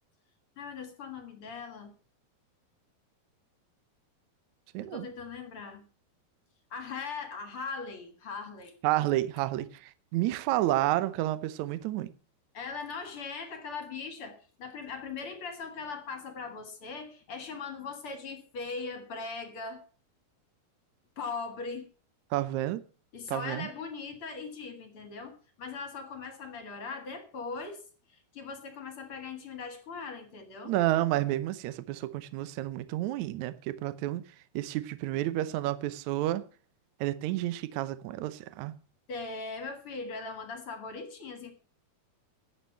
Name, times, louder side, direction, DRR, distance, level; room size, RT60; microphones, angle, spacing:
voice 1, 0.6-1.9 4.8-5.8 6.7-8.8 12.5-19.8 21.2-21.9 23.1-27.8 28.1-30.7 39.1-41.5, left 4 dB, 45° left, 2.0 m, -40 dB
voice 2, 4.7-5.1 8.8-12.1 22.3-22.8 23.3-23.7 30.6-34.2 34.5-36.4 37.0-38.7, right 15 dB, 85° right, 1.6 m, -30 dB
11.0 x 7.9 x 7.4 m
omnidirectional pair, 4.4 m